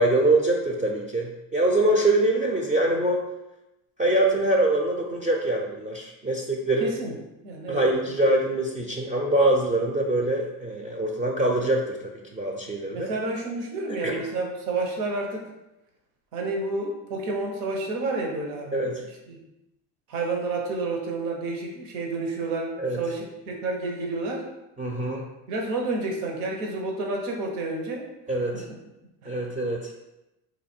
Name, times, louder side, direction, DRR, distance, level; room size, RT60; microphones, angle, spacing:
voice 1, 0.0-3.3 4.0-6.9 7.7-13.1 13.9-14.2 18.7-19.0 22.8-23.0 24.8-25.2 28.3-28.6 29.3-29.9, right 1 dB, 20° right, 0 dB, 0.5 m, -24 dB
voice 2, 6.8-7.1 7.4-7.8 12.9-15.5 16.3-18.9 19.3-19.4 20.1-24.5 25.5-28.1 29.2-29.5, right 3 dB, 85° right, 1 dB, 1.0 m, -30 dB
3.2 x 2.6 x 4.3 m, 0.94 s
supercardioid pair, 95°, 42 cm